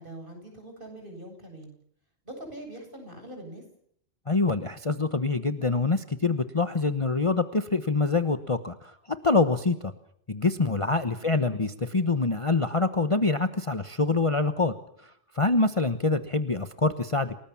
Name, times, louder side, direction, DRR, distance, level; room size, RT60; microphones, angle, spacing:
voice 1, 0.0-1.7 2.2-3.6 11.2-11.5, right 1 dB, 40° right, 4 dB, 8.4 m, -43 dB
voice 2, 4.3-9.0 9.2-9.9 10.3-17.4, left 3 dB, 25° left, 9 dB, 1.1 m, -25 dB
28.5 x 20.0 x 7.3 m, 0.67 s
omnidirectional pair, 1.3 m